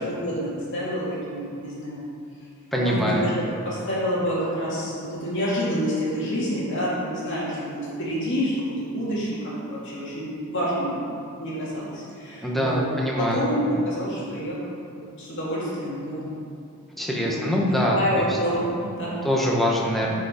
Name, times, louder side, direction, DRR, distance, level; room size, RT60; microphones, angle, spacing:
voice 1, 0.1-2.0 2.7-3.3 3.6-9.4 9.7-11.0 11.4-16.3 17.2-17.4 17.7-19.2, equal, 55° left, -7 dB, 2.5 m, -28 dB
voice 2, 2.7-3.2 12.4-13.5 17.0-18.4 19.2-20.1, equal, ahead, -3 dB, 1.2 m, -24 dB
12.5 x 5.1 x 5.1 m, 2.5 s
head